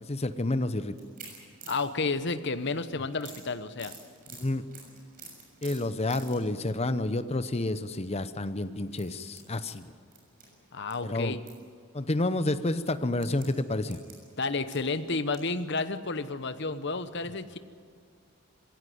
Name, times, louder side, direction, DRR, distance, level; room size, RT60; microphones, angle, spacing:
voice 1, 0.0-0.9 4.3-4.6 5.6-9.9 11.0-11.4 11.9-14.0, left 2 dB, 30° left, 12 dB, 0.8 m, -29 dB
sound 1, 1.0-2.8 3.2-6.5 6.9-7.2 8.0-8.2 8.8-10.9 11.2-11.6 12.0-12.1 12.8-15.5 16.0-16.1 16.4-16.5, right 4 dB, 40° right, 6.5 m, -49 dB
voice 2, 1.7-3.9 10.7-11.4 14.4-17.6, left 3 dB, 55° left, 11 dB, 1.0 m, -31 dB
21.5 x 16.5 x 9.4 m, 2.2 s
head